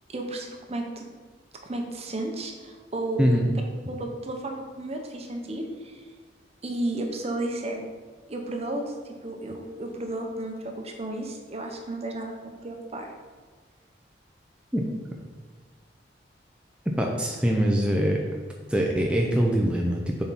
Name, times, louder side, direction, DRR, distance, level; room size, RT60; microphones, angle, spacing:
voice 1, 0.1-1.1 1.6-3.4 3.9-6.0 6.6-7.8 8.3-8.9 9.2-13.1, right 1 dB, 35° right, 3 dB, 0.8 m, -33 dB
voice 2, 3.2-3.5 14.7-14.8 17.0-18.2 18.7-20.2, equal, 5° right, -1 dB, 0.5 m, -23 dB
7.2 x 4.4 x 4.1 m, 1.4 s
head